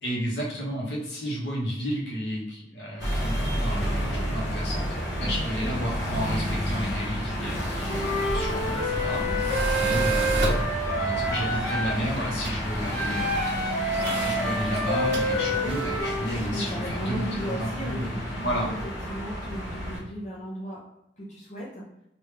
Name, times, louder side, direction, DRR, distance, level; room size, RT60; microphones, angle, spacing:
voice 1, 0.0-4.9 5.2-9.2 9.7-10.4 10.9-13.5 14.1-18.7, equal, 65° left, -3 dB, 1.1 m, -32 dB
sound 1, 3.0-20.0, equal, 90° left, 1.2 m, -31 dB
Wind instrument woodwind instrument, 7.9-11.9 12.9-16.3, equal, 20° left, 1.3 m, -28 dB
Tools, 8.0-16.0, equal, 65° right, 0.7 m, -33 dB
voice 2, 9.2-9.9 16.5-18.4 18.7-18.8 19.1-20.8 21.2-21.8, equal, 40° left, -6 dB, 0.7 m, -36 dB
3.3 x 2.5 x 3.3 m, 0.82 s
head